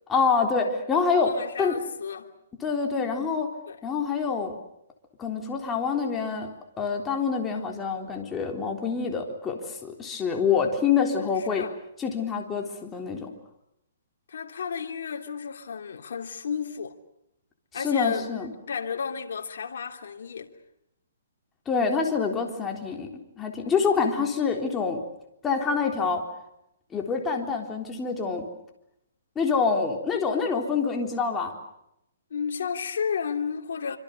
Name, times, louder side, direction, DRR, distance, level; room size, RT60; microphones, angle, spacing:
voice 1, 0.1-1.8 2.6-3.5 3.8-4.5 5.2-6.5 6.8-11.7 12.0-13.3 17.7-18.5 21.7-25.0 25.4-26.2 26.9-28.5 29.4-31.5, left 5 dB, 15° left, 3.8 m, -26 dB
voice 2, 1.2-2.3 3.7-3.8 11.2-11.7 14.3-16.9 17.7-18.4 18.7-20.5 32.3-34.0, left 6 dB, 70° left, 3.0 m, -32 dB
26.5 x 26.0 x 6.8 m
hypercardioid pair, 150°, 0 cm